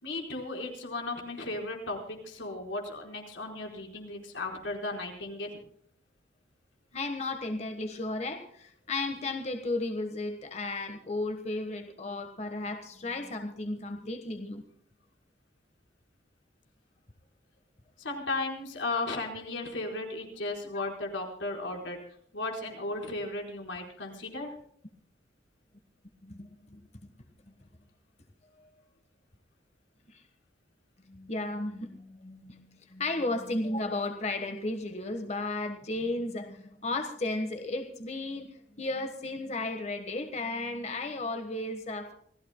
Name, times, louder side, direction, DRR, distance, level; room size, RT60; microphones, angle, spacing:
voice 1, 0.0-5.6 18.0-22.0 22.3-24.5, left 2 dB, 90° left, 1 dB, 4.5 m, -35 dB
voice 2, 6.9-14.6 20.7-20.8 26.2-26.8 30.1-30.2 31.1-38.5 38.8-42.1, left 2 dB, 35° left, 6 dB, 1.3 m, -34 dB
27.5 x 16.5 x 2.2 m, 0.65 s
head